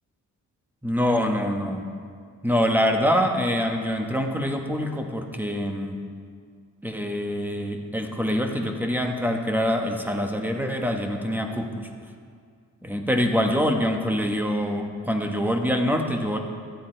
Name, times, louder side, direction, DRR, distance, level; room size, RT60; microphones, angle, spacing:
voice 1, 0.8-1.9 2.4-6.0 6.8-11.9 12.8-16.4, equal, 5° right, 3 dB, 1.1 m, -25 dB
12.5 x 9.1 x 4.4 m, 2.1 s
cardioid pair, 95°, 31 cm